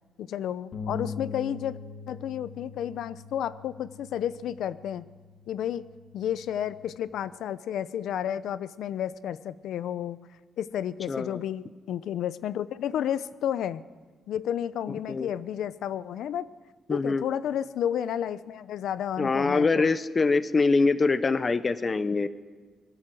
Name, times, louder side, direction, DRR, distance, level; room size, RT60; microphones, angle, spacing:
voice 1, 0.2-1.8 2.1-5.0 5.5-5.8 6.1-10.2 10.6-13.8 14.3-16.5 16.9-19.9, left 10 dB, 90° left, 16 dB, 0.7 m, -31 dB
Bass guitar, 0.7-7.0, left 4 dB, 50° left, 2.4 m, -42 dB
voice 2, 11.1-11.4 15.1-15.3 16.9-17.2 19.2-22.3, left 3 dB, 25° left, 14 dB, 0.8 m, -24 dB
24.5 x 21.0 x 7.8 m, 1.5 s
wide cardioid pair, 175°, 0 cm